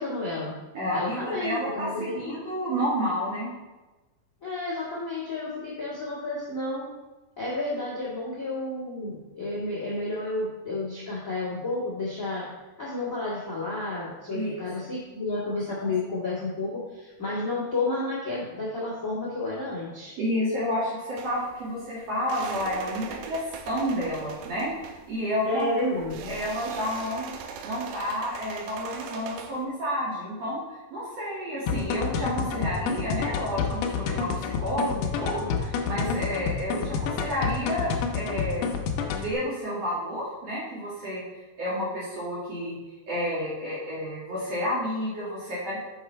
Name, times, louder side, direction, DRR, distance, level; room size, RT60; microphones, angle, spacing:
voice 1, 0.0-0.6 0.9-2.3 4.4-6.9 7.4-12.5 12.8-20.1 25.4-26.3 36.0-36.3, left 2 dB, 35° left, -7 dB, 1.3 m, -31 dB
voice 2, 0.7-3.5 14.3-14.7 20.2-24.7 25.1-25.7 26.3-27.3 27.6-30.6 30.9-38.7 39.1-41.2 41.6-42.7 43.1-45.8, equal, 50° right, -7 dB, 2.2 m, -30 dB
sound 1, 21.2-29.6, right 6 dB, 80° right, 2.2 m, -41 dB
sound 2, 31.7-39.3, left 6 dB, 85° left, 1.8 m, -29 dB
6.4 x 5.8 x 4.4 m, 1.1 s
omnidirectional pair, 4.4 m